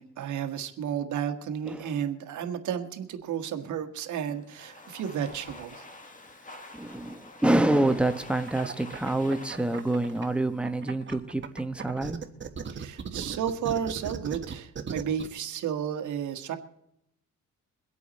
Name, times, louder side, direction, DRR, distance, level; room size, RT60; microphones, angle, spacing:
voice 1, 0.0-5.8 12.7-16.6, right 8 dB, 75° right, 6 dB, 1.6 m, -32 dB
voice 2, 1.7-2.0 6.7-12.2, right 1 dB, 5° right, 7 dB, 1.2 m, -27 dB
Domestic sounds home sounds, 4.3-11.2, left 2 dB, 25° left, 2.1 m, -49 dB
sound 1, 8.5-10.2 10.6-15.3, right 6 dB, 40° right, 1.4 m, -37 dB
23.0 x 8.4 x 4.2 m, 0.77 s
cardioid pair, 90°, 30 cm